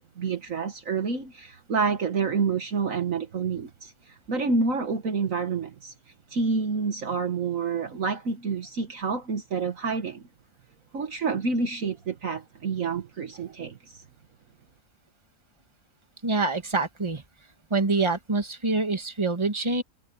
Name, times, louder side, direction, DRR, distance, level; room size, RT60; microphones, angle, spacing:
voice 1, 0.0-3.9 4.3-5.9 6.3-10.2 10.9-14.0, right 4 dB, 55° right, 1.7 m, -28 dB
voice 2, 16.2-17.2 17.7-19.8, right 3 dB, 20° right, 2.1 m, -25 dB
omnidirectional pair, 1.7 m